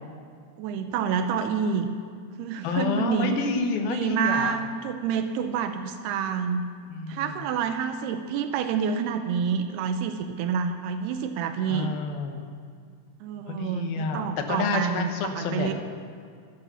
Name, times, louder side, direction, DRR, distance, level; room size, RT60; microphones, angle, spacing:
voice 1, 0.6-1.9 2.4-3.4 3.9-6.7 7.1-11.9 13.2-15.7, right 7 dB, 85° right, 8 dB, 2.7 m, -28 dB
voice 2, 2.6-4.5 6.9-7.3 11.7-12.5 13.5-15.7, left 4 dB, 70° left, 5 dB, 3.0 m, -29 dB
16.5 x 12.5 x 6.9 m, 2.2 s
omnidirectional pair, 4.6 m